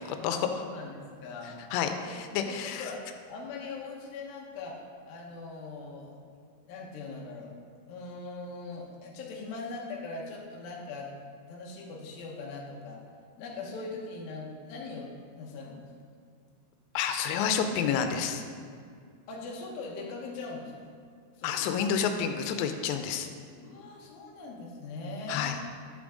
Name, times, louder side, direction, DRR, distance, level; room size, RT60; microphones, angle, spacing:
voice 1, 0.0-0.6 1.7-2.9 16.9-18.4 21.4-23.3 25.3-25.6, left 7 dB, 85° left, 7 dB, 3.1 m, -29 dB
voice 2, 0.7-1.6 2.1-2.2 2.5-3.0 3.3-4.8 5.0-6.2 6.7-7.5 7.9-11.1 11.5-13.0 13.4-15.9 19.3-20.9 21.4-21.6 23.6-25.6, left 3 dB, 70° left, -2 dB, 2.4 m, -41 dB
11.0 x 6.1 x 3.7 m, 2.2 s
omnidirectional pair, 5.5 m